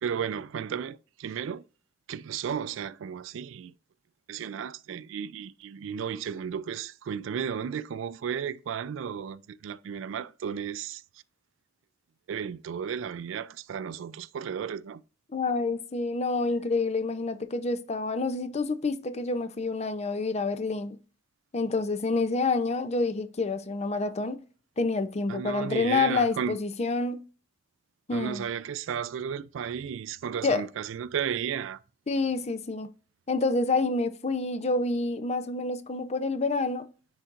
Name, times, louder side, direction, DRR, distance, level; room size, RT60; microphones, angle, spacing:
voice 1, 0.0-1.6 2.1-3.7 4.3-11.0 12.3-15.0 25.3-26.6 28.1-31.8, right 7 dB, 75° right, 0.3 m, -34 dB
voice 2, 15.3-21.0 21.5-24.4 24.8-27.2 28.1-28.4 30.4-30.6 32.1-32.9 33.3-36.8, left 3 dB, 35° left, 0.6 m, -28 dB
9.8 x 4.0 x 2.5 m
head